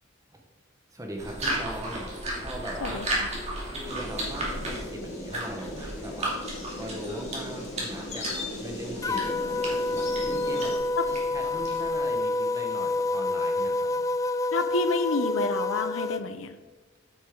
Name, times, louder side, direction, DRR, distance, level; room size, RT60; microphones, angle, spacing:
voice 1, 0.9-2.1 2.3-3.1 3.7-10.8 11.1-14.0, right 1 dB, 15° right, 3 dB, 1.3 m, -40 dB
sound 1, 1.2-12.0, right 1 dB, 35° right, 2.7 m, -35 dB
voice 2, 2.8-3.4 11.0-11.1 14.5-16.6, left 3 dB, 80° left, 10 dB, 0.8 m, -29 dB
sound 2, 3.8-10.8, left 2 dB, 35° left, 2.3 m, -38 dB
sound 3, 9.0-16.2, left 2 dB, 15° left, 0.3 m, -28 dB
9.0 x 8.4 x 3.8 m, 1.3 s
head